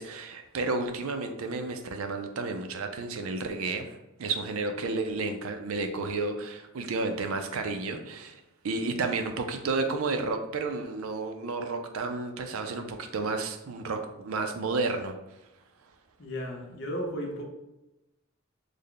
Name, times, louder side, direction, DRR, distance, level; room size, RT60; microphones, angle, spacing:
voice 1, 0.0-15.2, right 3 dB, 70° right, 6 dB, 0.4 m, -32 dB
voice 2, 16.2-17.4, equal, 60° left, 1 dB, 0.7 m, -34 dB
3.3 x 2.1 x 3.8 m, 0.96 s
head